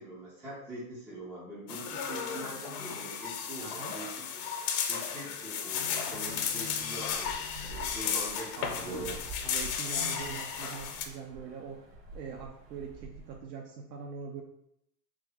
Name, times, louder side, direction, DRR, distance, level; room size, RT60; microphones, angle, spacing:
voice 1, 0.0-4.3 4.9-9.2, right 1 dB, 5° right, -6 dB, 0.4 m, -43 dB
sound 1, 1.7-11.0, left 7 dB, 60° left, 0.8 m, -34 dB
voice 2, 3.6-4.0 8.6-9.2 9.4-11.8 12.1-14.4, right 5 dB, 75° right, 1 dB, 0.8 m, -43 dB
sound 2, 6.1-13.4, right 2 dB, 60° right, 1.4 m, -48 dB
3.4 x 3.2 x 3.5 m, 0.76 s
supercardioid pair, 135°, 50 cm